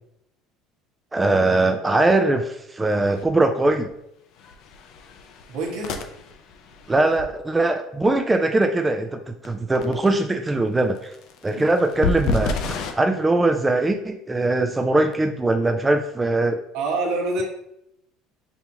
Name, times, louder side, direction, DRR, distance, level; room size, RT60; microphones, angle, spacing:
voice 1, 1.1-3.9 6.9-11.1 11.4-12.6 13.0-16.6, right 2 dB, 15° right, 5 dB, 0.3 m, -21 dB
sound 1, 3.2-3.3 3.6-3.9 4.4-7.2 9.4-9.5 9.8-10.1 11.0-12.9, left 4 dB, 65° left, 0.5 m, -30 dB
voice 2, 5.5-6.0 11.5-11.6 16.7-17.4, right 2 dB, 70° right, -2 dB, 1.4 m, -26 dB
5.4 x 2.8 x 2.9 m, 0.79 s
supercardioid pair, 100°, 0 cm